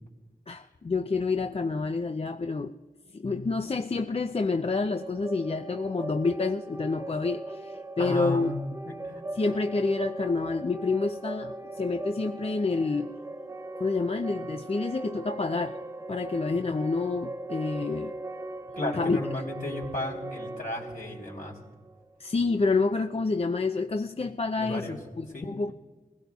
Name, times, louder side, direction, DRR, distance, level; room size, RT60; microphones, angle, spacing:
voice 1, 0.5-2.8 3.1-8.5 9.4-13.2 13.8-15.8 16.1-18.1 19.0-19.2 22.2-25.7, left 3 dB, 40° left, 6 dB, 0.5 m, -28 dB
sound 1, 4.7-22.5, right 2 dB, 20° right, 0.6 m, -39 dB
voice 2, 8.0-8.5 8.9-9.2 18.8-21.6 24.5-25.0 25.3-25.5, left 2 dB, 65° left, -1 dB, 3.7 m, -34 dB
22.5 x 16.0 x 2.4 m, 1.3 s
cardioid pair, 45°, 16 cm